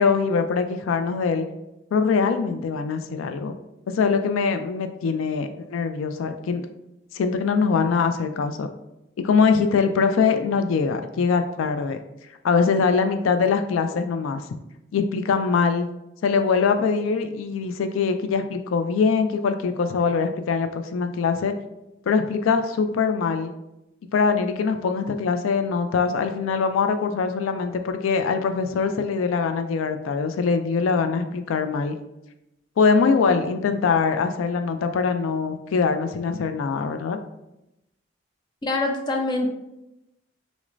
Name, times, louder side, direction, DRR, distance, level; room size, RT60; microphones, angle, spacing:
voice 1, 0.0-1.5 1.9-3.5 3.9-6.6 7.1-8.7 9.2-12.0 12.4-14.4 14.9-15.9 16.2-21.5 22.1-23.5 24.1-31.9 32.8-37.2, left 5 dB, 85° left, 8 dB, 0.3 m, -23 dB
voice 2, 38.6-39.5, left 2 dB, 20° left, 2 dB, 0.4 m, -24 dB
6.0 x 2.1 x 2.5 m, 0.91 s
head